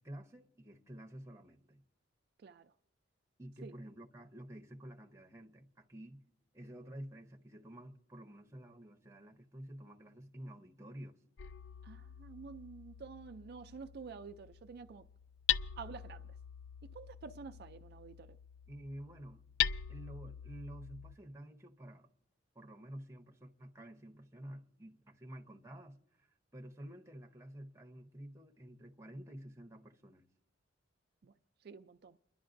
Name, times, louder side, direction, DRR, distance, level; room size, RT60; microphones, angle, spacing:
voice 1, 0.0-1.8 3.4-6.2 6.5-11.2 18.7-19.4 19.9-22.1 22.5-30.2, right 1 dB, 15° right, 0.8 m, -50 dB
voice 2, 2.4-2.7 3.6-3.7 11.8-15.1 15.8-16.4 16.9-18.4 31.2-31.3 31.6-32.2, right 5 dB, 55° right, 0.4 m, -49 dB
Hammer, 11.4-21.1, left 10 dB, 70° left, 0.4 m, -41 dB
29.5 x 11.0 x 2.5 m
head